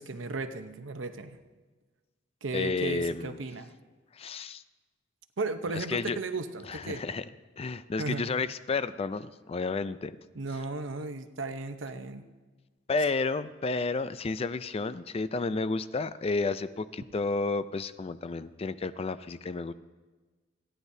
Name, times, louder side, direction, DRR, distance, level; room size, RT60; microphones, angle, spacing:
voice 1, 0.0-1.4 2.4-3.7 5.4-7.0 8.0-8.2 10.3-12.2, right 3 dB, 80° right, 8 dB, 0.8 m, -35 dB
voice 2, 2.5-3.4 4.1-4.6 5.7-6.2 6.7-7.3 7.6-10.2 12.9-19.7, left 3 dB, 30° left, 14 dB, 0.4 m, -31 dB
28.5 x 10.0 x 2.7 m, 1.3 s
head